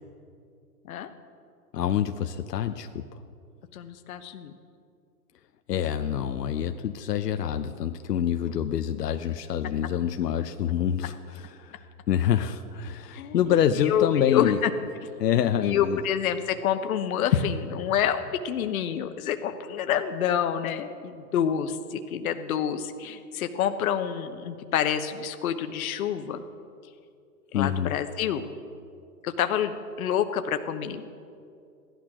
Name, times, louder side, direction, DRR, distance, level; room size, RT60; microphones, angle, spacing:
voice 1, 1.7-3.1 5.7-14.6 15.2-16.0 27.5-27.9, left 9 dB, 75° left, 7 dB, 0.8 m, -26 dB
voice 2, 3.7-4.5 13.1-13.6 13.8-14.7 15.3-26.4 27.5-28.4 29.2-31.1, left 9 dB, 60° left, 7 dB, 1.1 m, -27 dB
16.0 x 11.5 x 6.0 m, 2.4 s
hypercardioid pair, 135°, 48 cm